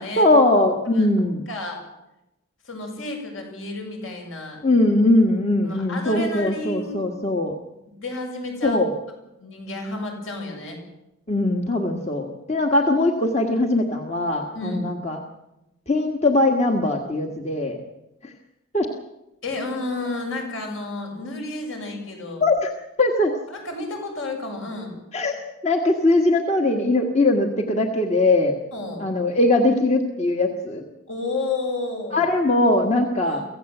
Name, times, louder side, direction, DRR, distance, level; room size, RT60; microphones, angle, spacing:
voice 1, 0.2-1.5 4.6-7.5 8.6-8.9 11.3-15.2 15.9-17.8 18.2-18.3 18.7-18.9 22.4-22.7 23.0-23.3 25.1-25.3 25.6-28.6 29.0-30.8 32.1-33.4, left 2 dB, 30° left, 3 dB, 1.6 m, -20 dB
voice 2, 1.5-1.8 2.6-4.6 5.6-7.0 7.9-8.8 9.4-10.8 14.5-14.9 19.4-22.4 23.5-25.0 28.7-29.1 31.1-32.2 33.2-33.4, left 2 dB, 65° left, 2 dB, 7.1 m, -31 dB
25.0 x 16.0 x 8.0 m, 0.91 s
head